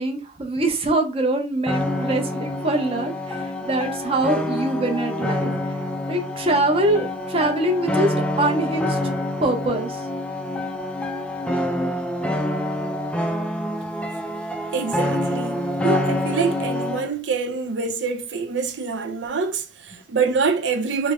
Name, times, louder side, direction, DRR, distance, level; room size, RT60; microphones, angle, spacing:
voice 1, 0.0-5.5 6.1-9.1 9.4-10.0, right 2 dB, 30° right, 0.7 m, -23 dB
sound 1, 1.7-17.1, left 1 dB, 5° left, 0.3 m, -26 dB
voice 2, 14.7-21.1, right 5 dB, 85° right, 0.6 m, -25 dB
3.2 x 2.1 x 3.6 m
head